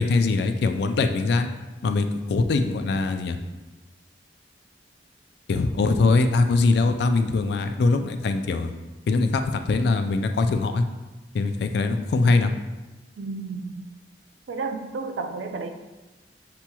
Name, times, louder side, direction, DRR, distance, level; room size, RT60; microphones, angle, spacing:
voice 1, 0.0-1.5 1.8-3.4 5.5-8.7 9.1-10.8 11.3-12.5, left 3 dB, 65° left, 7 dB, 0.3 m, -22 dB
voice 2, 13.2-13.9 14.5-15.7, right 4 dB, 85° right, 5 dB, 0.4 m, -32 dB
6.9 x 2.9 x 2.3 m, 1.2 s
head